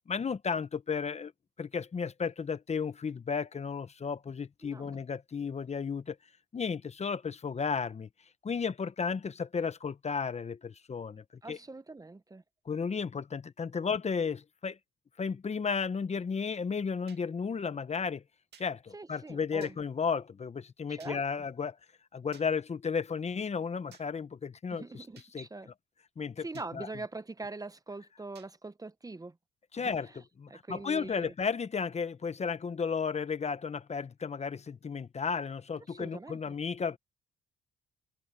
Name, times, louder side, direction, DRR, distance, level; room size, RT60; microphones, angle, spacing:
voice 1, 0.1-1.3 1.6-6.2 6.5-8.1 8.4-11.6 12.7-14.8 15.2-18.2 18.6-21.8 22.1-25.0 25.3-25.5 26.2-26.4 26.7-26.9 29.7-30.1 30.4-37.0, left 5 dB, 35° left, 1.0 m, -33 dB
voice 2, 4.6-5.0 11.4-12.4 18.9-19.8 20.9-21.2 24.7-25.7 26.4-29.4 29.8-30.1 30.5-31.3 35.9-36.5, right 3 dB, 20° right, 0.9 m, -43 dB
sound 1, 17.1-17.2 18.5-18.7 19.6-19.8 21.0-21.2 22.3-22.5 23.9-24.1 25.2-25.3 26.5-26.7 28.4-28.5, right 8 dB, 55° right, 2.3 m, -56 dB
cardioid pair, 90°, 20 cm